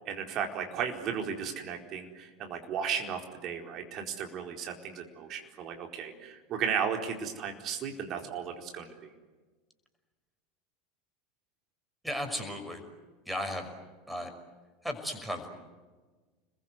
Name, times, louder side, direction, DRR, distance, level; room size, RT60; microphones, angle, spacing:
voice 1, 0.1-9.1, right 7 dB, 40° right, 3 dB, 4.4 m, -35 dB
voice 2, 12.0-12.8 13.2-13.7 14.1-14.3 14.8-15.5, equal, ahead, 5 dB, 5.8 m, -35 dB
30.0 x 22.0 x 8.3 m, 1.3 s
figure-of-eight pair, 80°, 0 cm